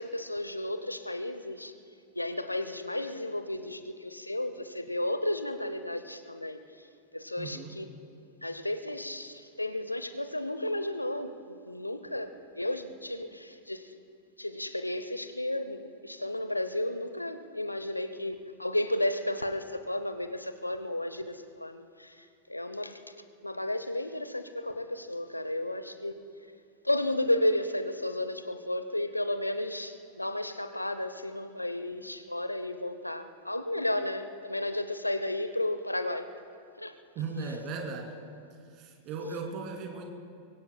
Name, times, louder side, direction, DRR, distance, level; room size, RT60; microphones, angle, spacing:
voice 1, 0.0-1.7 2.1-6.6 7.1-7.9 8.4-14.0 14.4-23.1 23.4-26.2 26.8-36.3 36.8-37.0, left 1 dB, 85° left, 11 dB, 0.7 m, -33 dB
voice 2, 7.4-7.8 37.1-38.2 38.7-40.1, right 4 dB, 40° right, 2 dB, 2.5 m, -37 dB
25.0 x 23.0 x 2.3 m, 2.4 s
figure-of-eight pair, 90°, 0 cm